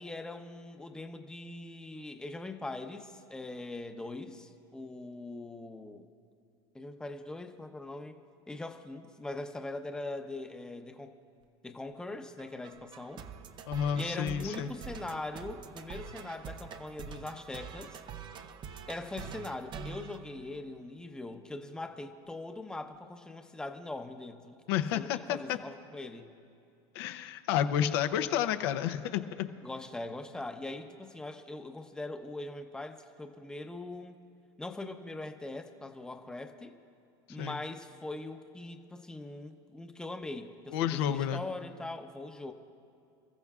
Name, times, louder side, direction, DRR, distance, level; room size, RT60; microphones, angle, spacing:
voice 1, 0.0-6.1 6.7-8.2 8.5-11.1 11.6-13.2 13.9-18.0 18.9-24.6 24.9-26.3 29.6-34.2 34.6-36.7 37.3-42.5, left 2 dB, 5° left, 6 dB, 0.7 m, -41 dB
sound 1, 12.4-21.0, right 6 dB, 35° right, 0.6 m, -46 dB
voice 2, 13.7-14.7 24.7-25.6 26.9-29.5 37.4-37.6 40.7-41.4, left 9 dB, 80° left, 9 dB, 0.7 m, -30 dB
28.0 x 14.0 x 2.4 m, 2.5 s
supercardioid pair, 125°, 13 cm